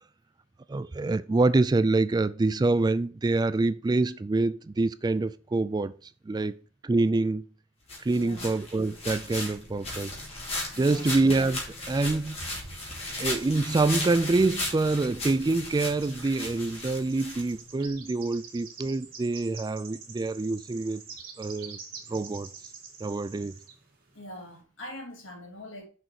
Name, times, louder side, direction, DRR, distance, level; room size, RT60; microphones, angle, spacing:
voice 1, 0.7-5.9 6.3-6.6 6.8-7.4 8.0-10.1 10.8-12.4 13.2-21.0 21.4-21.8 22.1-22.5 23.0-23.5, right 3 dB, 20° right, 0.3 m, -26 dB
sound 1, 7.9-17.9, left 2 dB, 30° left, 2.7 m, -36 dB
voice 2, 8.1-8.5 10.7-11.1 24.1-25.9, left 1 dB, 70° left, 2.7 m, -43 dB
sound 2, 10.8-12.3 12.6-13.8 14.1-14.3 14.9-23.8, right 6 dB, 50° right, 2.2 m, -47 dB
6.4 x 5.2 x 4.6 m
head